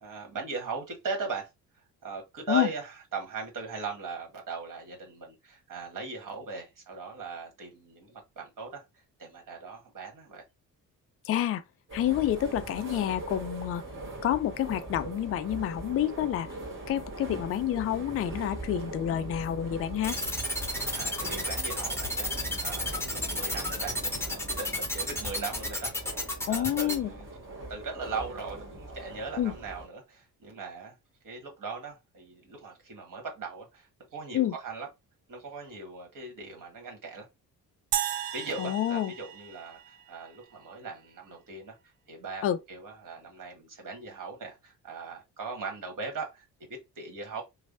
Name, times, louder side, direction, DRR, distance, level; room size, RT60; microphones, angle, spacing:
voice 1, 0.0-1.5 2.0-8.8 9.2-10.4 21.0-22.3 22.6-27.3 27.7-30.9 31.2-34.9 35.3-37.3 38.3-47.4, right 4 dB, 45° right, 1.4 m, -39 dB
voice 2, 11.2-11.6 11.9-13.8 14.2-16.5 16.9-20.2 26.5-27.1 29.4-29.5 34.3-34.5 38.6-39.1 42.4-42.6, left 11 dB, 35° left, 0.4 m, -28 dB
sound 1, 11.9-29.9, right 2 dB, 25° right, 1.4 m, -41 dB
sound 2, 20.0-27.0, left 1 dB, 5° left, 0.9 m, -32 dB
sound 3, 37.9-40.4, right 11 dB, 70° right, 0.5 m, -34 dB
3.1 x 2.0 x 2.5 m
hypercardioid pair, 45°, 45 cm